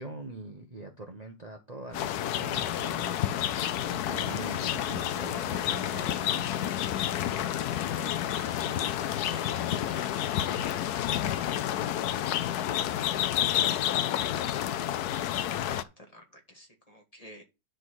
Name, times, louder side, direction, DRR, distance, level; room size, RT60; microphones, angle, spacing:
voice 1, 0.0-3.1 3.8-6.7, right 2 dB, 30° right, 1.0 m, -43 dB
sound 1, 1.9-15.8, left 11 dB, 75° left, 1.1 m, -30 dB
sound 2, 1.9-11.5, right 8 dB, 55° right, 1.1 m, -50 dB
voice 2, 13.1-13.7 14.4-17.4, equal, 25° left, 1.7 m, -54 dB
10.5 x 3.9 x 6.3 m
omnidirectional pair, 1.7 m